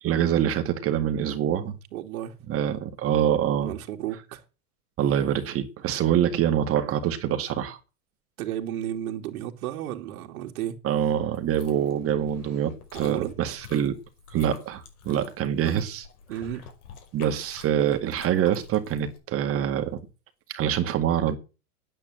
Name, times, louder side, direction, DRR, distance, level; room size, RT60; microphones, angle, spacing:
voice 1, 0.0-1.7 2.5-3.7 5.0-7.8 10.8-14.0 14.3-16.1 17.1-20.0 20.5-21.4, right 10 dB, 30° right, 2.0 m, -25 dB
voice 2, 1.9-2.4 3.6-4.4 8.4-10.8 12.9-13.3 16.3-16.7, right 11 dB, 75° right, 2.6 m, -33 dB
Chewing mastication, 11.3-19.2, left 7 dB, 80° left, 5.3 m, -48 dB
10.5 x 9.3 x 7.6 m
supercardioid pair, 140°, 44 cm